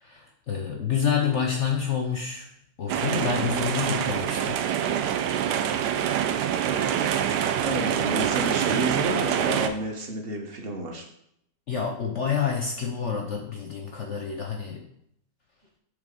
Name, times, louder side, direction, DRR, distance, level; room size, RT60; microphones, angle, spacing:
voice 1, 0.0-2.5 2.8-4.6 11.7-14.8, left 7 dB, 60° left, 2 dB, 0.7 m, -28 dB
sound 1, 2.9-9.7, right 9 dB, 75° right, 1.1 m, -25 dB
voice 2, 6.7-7.3 7.6-11.0, right 1 dB, 40° right, 3 dB, 0.9 m, -31 dB
6.5 x 3.6 x 5.2 m, 0.75 s
omnidirectional pair, 1.9 m